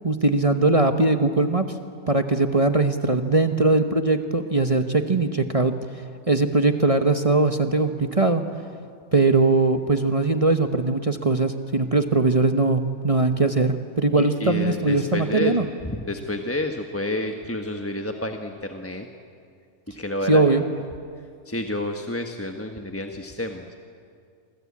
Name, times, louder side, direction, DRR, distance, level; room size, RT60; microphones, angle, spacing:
voice 1, 0.0-1.7 2.1-5.8 6.3-8.4 9.1-15.7 20.3-20.6, right 3 dB, 25° right, 7 dB, 1.0 m, -20 dB
voice 2, 14.2-19.1 20.0-20.4 21.4-23.7, left 1 dB, 10° left, 4 dB, 1.1 m, -29 dB
28.0 x 24.5 x 8.6 m, 2.3 s
omnidirectional pair, 1.6 m